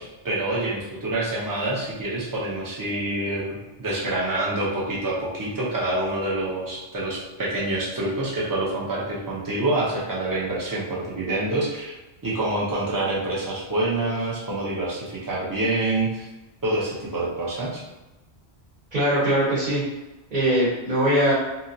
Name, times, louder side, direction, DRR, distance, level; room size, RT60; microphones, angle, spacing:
voice 1, 0.0-11.9 12.2-16.3 16.6-17.8, right 2 dB, 25° right, -5 dB, 0.6 m, -27 dB
voice 2, 18.9-19.8 20.3-21.3, right 1 dB, 50° right, -9 dB, 1.1 m, -21 dB
2.8 x 2.7 x 2.5 m, 1.1 s
omnidirectional pair, 1.1 m